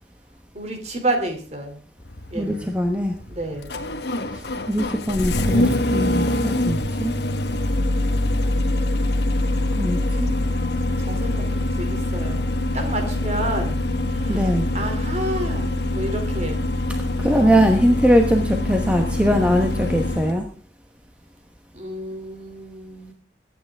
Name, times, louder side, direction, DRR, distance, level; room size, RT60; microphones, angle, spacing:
voice 1, 0.5-1.8 2.3-2.7 3.3-3.7 11.0-12.4 12.7-13.8 14.1-16.7 21.7-23.1, right 1 dB, 35° right, 5 dB, 2.9 m, -30 dB
Engine starting, 2.0-20.4, left 1 dB, 65° left, 1.2 m, -24 dB
voice 2, 2.3-3.1 4.3-7.1 9.8-10.3 14.3-14.7 17.2-20.4, equal, 5° right, 3 dB, 1.1 m, -21 dB
22.5 x 9.2 x 3.5 m, 0.42 s
head